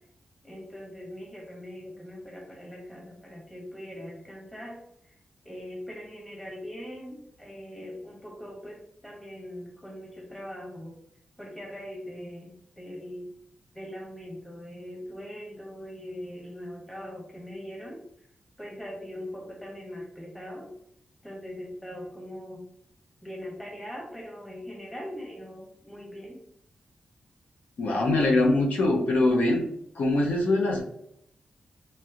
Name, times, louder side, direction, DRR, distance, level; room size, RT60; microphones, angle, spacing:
voice 1, 0.4-4.8 5.0-5.1 5.4-11.0 11.4-13.3 13.7-18.0 18.6-20.7 21.2-22.6 23.2-26.4, equal, 5° left, -2 dB, 1.0 m, -41 dB
voice 2, 27.8-29.7 30.0-30.8, left 2 dB, 85° left, -1 dB, 0.7 m, -23 dB
3.1 x 2.9 x 2.4 m, 0.76 s
wide cardioid pair, 115°, 3 cm